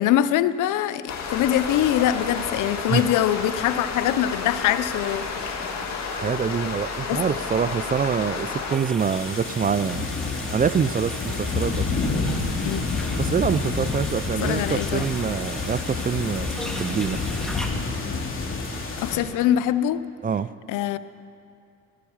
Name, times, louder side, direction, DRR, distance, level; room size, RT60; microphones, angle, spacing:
voice 1, 0.0-5.7 7.1-7.2 12.6-12.8 14.4-15.1 19.0-20.0 20.7-21.0, left 11 dB, 85° left, 14 dB, 0.6 m, -23 dB
sound 1, 1.1-8.8, left 5 dB, 60° left, 2.4 m, -31 dB
voice 2, 6.1-10.1 10.5-11.9 13.2-17.2 20.2-20.5, right 6 dB, 30° right, 16 dB, 0.4 m, -25 dB
sound 2, 8.7-17.7, equal, ahead, 2.0 m, -38 dB
sound 3, 9.0-19.2, left 3 dB, 45° left, 2.9 m, -28 dB
16.5 x 12.0 x 7.2 m, 2.6 s
cardioid pair, 90°, 30 cm